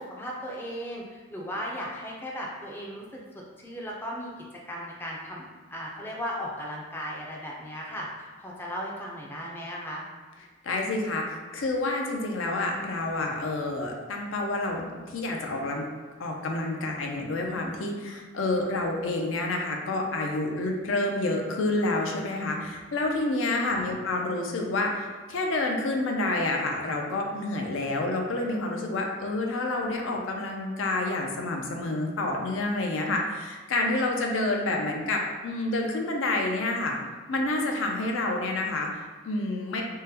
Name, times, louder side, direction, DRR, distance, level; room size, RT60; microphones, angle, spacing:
voice 1, 0.0-3.2 3.6-4.3 4.7-10.1 23.5-24.0, equal, 10° left, -3 dB, 0.3 m, -36 dB
voice 2, 10.6-15.9 16.2-37.0 37.3-39.8, left 2 dB, 85° left, 1 dB, 0.5 m, -28 dB
3.7 x 2.1 x 2.7 m, 1.3 s
head